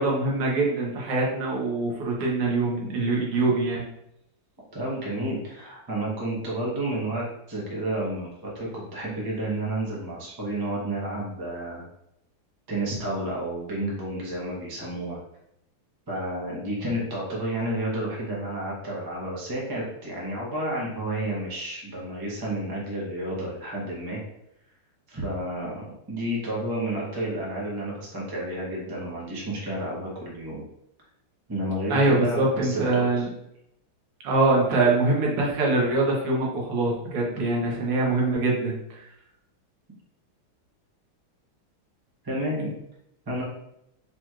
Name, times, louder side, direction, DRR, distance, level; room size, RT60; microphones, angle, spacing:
voice 1, 0.0-3.9 31.9-33.3 34.2-38.8, right 2 dB, 85° right, -2 dB, 2.0 m, -23 dB
voice 2, 4.7-11.8 12.7-15.2 16.1-24.2 25.1-30.6 31.5-33.2 42.2-42.7 43.3-43.4, right 1 dB, 35° right, -4 dB, 0.3 m, -31 dB
5.0 x 3.0 x 2.4 m, 0.79 s
omnidirectional pair, 2.4 m